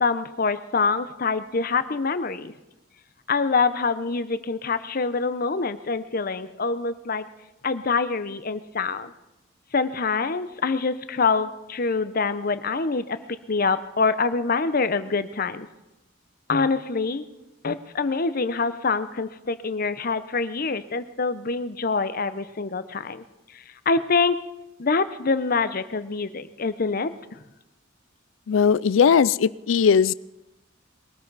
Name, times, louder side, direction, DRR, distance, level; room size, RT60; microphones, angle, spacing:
voice 1, 0.0-2.5 3.3-7.2 7.6-9.1 9.7-13.2 13.5-15.7 16.5-17.2 17.6-23.2 23.9-24.4 24.8-27.1, left 4 dB, 50° left, 12 dB, 0.8 m, -25 dB
voice 2, 28.5-30.1, left 6 dB, 80° left, 20 dB, 0.4 m, -18 dB
21.5 x 13.5 x 4.1 m, 0.96 s
head